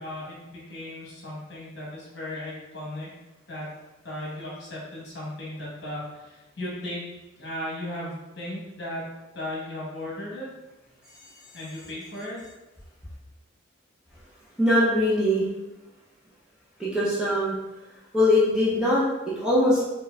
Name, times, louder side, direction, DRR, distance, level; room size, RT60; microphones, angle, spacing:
voice 1, 0.0-3.1 3.5-3.7 4.0-7.1 7.4-9.0 9.3-10.5 11.5-12.4, left 1 dB, 60° left, -5 dB, 1.2 m, -36 dB
voice 2, 14.6-15.5 16.8-17.5 18.1-19.8, left 1 dB, 5° right, -8 dB, 0.6 m, -22 dB
4.4 x 2.3 x 2.3 m, 1.0 s
head